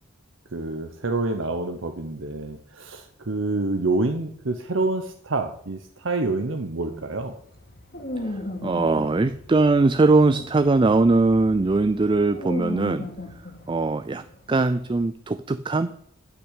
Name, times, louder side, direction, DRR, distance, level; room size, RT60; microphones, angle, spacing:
voice 1, 0.5-7.3, right 2 dB, 70° right, 6 dB, 0.9 m, -27 dB
sound 1, 6.9-15.1, left 1 dB, 50° left, 2.5 m, -36 dB
voice 2, 8.6-13.1 13.7-15.9, right 3 dB, 25° right, 13 dB, 0.4 m, -21 dB
12.0 x 5.9 x 8.1 m, 0.68 s
head